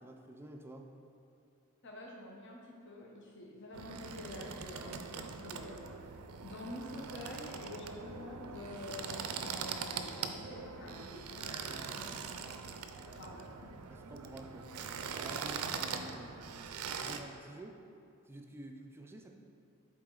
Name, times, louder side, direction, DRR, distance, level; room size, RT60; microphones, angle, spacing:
voice 1, 0.0-0.9 11.6-12.0 12.4-12.6 13.9-17.8 18.2-19.3, right 1 dB, 10° right, 3 dB, 0.3 m, -51 dB
voice 2, 1.8-6.0 6.4-12.1 12.8-13.7, left 1 dB, 55° left, -2 dB, 0.8 m, -47 dB
sound 1, 3.7-17.2, right 6 dB, 80° right, 0.4 m, -42 dB
7.7 x 4.1 x 3.7 m, 2.7 s
head